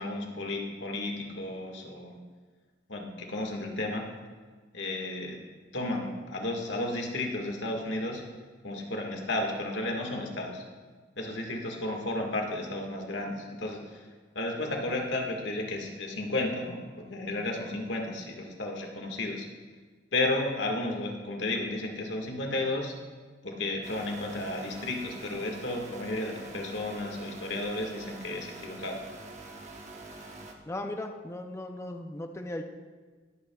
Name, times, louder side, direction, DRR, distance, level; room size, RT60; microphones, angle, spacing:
voice 1, 0.0-2.2 2.9-4.0 4.7-5.4 5.7-8.2 8.6-10.6 11.2-13.8 14.3-19.4 20.1-22.9 23.4-29.0, left 2 dB, 80° left, 1 dB, 1.8 m, -33 dB
sound 1, 23.8-30.6, right 2 dB, 40° right, 1.1 m, -46 dB
voice 2, 30.7-32.6, left 1 dB, 15° left, 4 dB, 0.5 m, -37 dB
21.0 x 8.8 x 2.4 m, 1.4 s
head